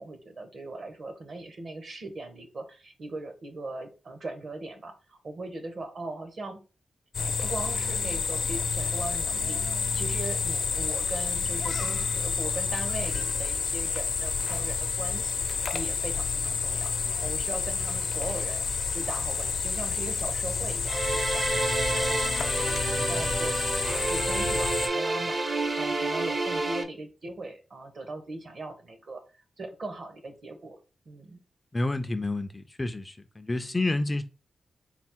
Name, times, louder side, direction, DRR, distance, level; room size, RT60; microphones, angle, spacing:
voice 1, 0.0-6.6 7.2-9.6 9.9-16.9 17.2-18.7 18.9-25.4 25.8-29.2 29.6-30.8 31.1-31.4, right 2 dB, 50° right, 0.9 m, -39 dB
sound 1, 7.1-24.9, left 5 dB, 70° left, 0.5 m, -29 dB
sound 2, 7.4-12.9, right 7 dB, 90° right, 1.1 m, -50 dB
sound 3, 20.9-26.8, right 2 dB, 35° right, 0.6 m, -29 dB
voice 2, 31.7-34.2, left 2 dB, 20° left, 0.3 m, -29 dB
4.1 x 2.0 x 4.3 m
wide cardioid pair, 120°, 0 cm